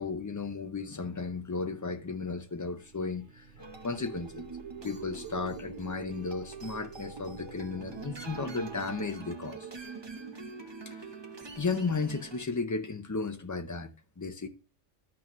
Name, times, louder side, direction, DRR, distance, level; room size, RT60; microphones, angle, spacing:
voice 1, 0.0-4.4 4.8-9.7 10.9-11.1 11.6-14.5, left 4 dB, 20° left, 0.5 m, -34 dB
sound 1, 2.7-9.2, right 5 dB, 70° right, 1.1 m, -52 dB
sound 2, 3.6-12.4, right 4 dB, 25° right, 0.8 m, -44 dB
12.5 x 6.1 x 3.0 m
omnidirectional pair, 1.2 m